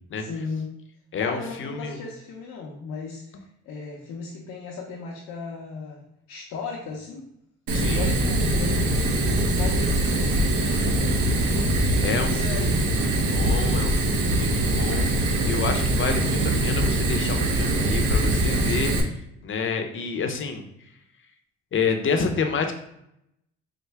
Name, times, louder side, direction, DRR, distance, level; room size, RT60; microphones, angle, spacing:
voice 1, 0.2-0.7 1.2-7.3 7.8-11.4 12.3-13.0, left 4 dB, 80° left, -3 dB, 0.7 m, -36 dB
voice 2, 1.1-2.0 7.7-8.1 12.0-15.1 15.4-19.1 19.4-20.6 21.7-22.7, left 5 dB, 40° left, 5 dB, 0.6 m, -29 dB
Fire, 7.7-19.0, right 1 dB, 70° right, 0.8 m, -23 dB
4.5 x 2.0 x 3.3 m, 0.79 s
cardioid pair, 90°, 30 cm